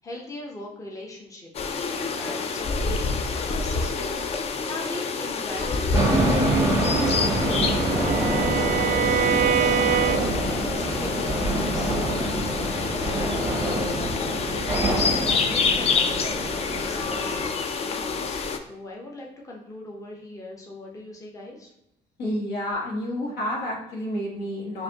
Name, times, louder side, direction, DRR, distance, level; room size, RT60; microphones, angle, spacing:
voice 1, 0.0-1.5 1.9-9.2 9.6-11.9 14.8-21.7, left 1 dB, 20° left, -1 dB, 0.8 m, -40 dB
sound 1, 1.5-18.6, left 4 dB, 40° left, 0.4 m, -27 dB
sound 2, 5.9-17.5, right 1 dB, 15° right, 0.7 m, -26 dB
Bowed string instrument, 6.7-10.6, right 10 dB, 50° right, 0.4 m, -26 dB
voice 2, 22.2-24.8, left 1 dB, 75° left, -2 dB, 1.4 m, -29 dB
4.9 x 2.6 x 2.8 m, 0.82 s
cardioid pair, 110°, 17 cm